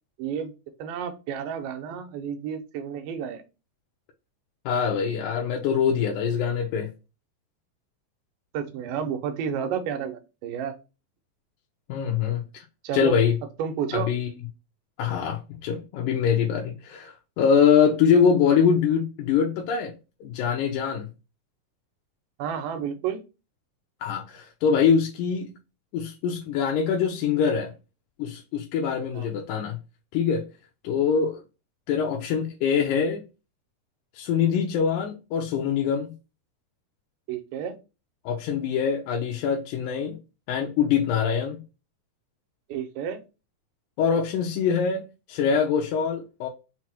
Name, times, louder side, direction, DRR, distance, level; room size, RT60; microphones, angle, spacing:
voice 1, 0.2-0.5 0.8-3.4 8.5-10.7 12.8-13.2 13.6-14.1 22.4-23.2 29.1-29.3 37.3-37.7 42.7-43.2, right 8 dB, 85° right, 2.3 m, -31 dB
voice 2, 4.7-6.9 11.9-12.6 12.9-13.4 13.9-14.3 15.0-21.1 24.0-25.5 25.9-27.7 28.2-29.8 30.1-30.5 30.8-31.4 31.9-33.2 34.1-36.1 38.3-40.2 40.5-41.6 44.0-46.5, left 7 dB, 80° left, 2.0 m, -24 dB
5.8 x 2.0 x 4.3 m
omnidirectional pair, 3.9 m